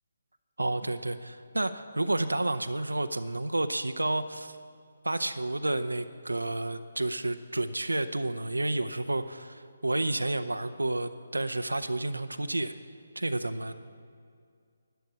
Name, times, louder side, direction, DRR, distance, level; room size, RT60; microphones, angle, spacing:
voice 1, 0.6-4.6 5.0-12.7 13.2-13.7, right 2 dB, 80° right, 9 dB, 0.6 m, -30 dB
12.5 x 10.0 x 7.0 m, 2.2 s
figure-of-eight pair, 145°, 0 cm